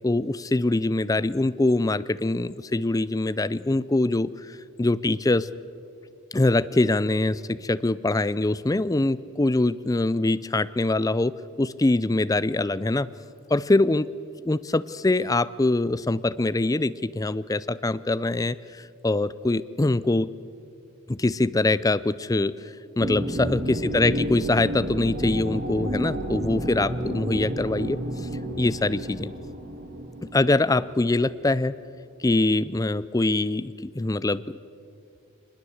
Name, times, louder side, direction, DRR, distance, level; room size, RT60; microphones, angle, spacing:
voice 1, 0.0-5.5 6.3-11.3 11.6-13.1 13.5-14.1 14.4-20.3 21.1-22.5 23.0-28.3 28.6-29.3 30.2-31.7 32.2-34.6, left 2 dB, 15° left, 16 dB, 0.5 m, -23 dB
sound 1, 23.0-31.5, right 1 dB, 45° right, 2.6 m, -31 dB
23.5 x 20.5 x 8.0 m, 2.5 s
head